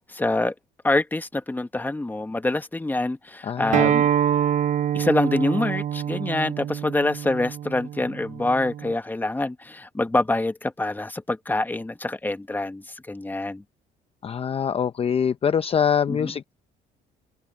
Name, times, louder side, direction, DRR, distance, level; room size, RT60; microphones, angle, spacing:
voice 1, 0.1-0.5 0.8-4.0 4.9-13.6 16.1-16.3, left 2 dB, 10° left, 1.5 m, -25 dB
voice 2, 3.4-3.9 14.2-16.5, left 7 dB, 35° left, 0.7 m, -24 dB
Acoustic guitar, 3.7-8.9, right 9 dB, 45° right, 0.8 m, -25 dB
cardioid pair, 110°, 17 cm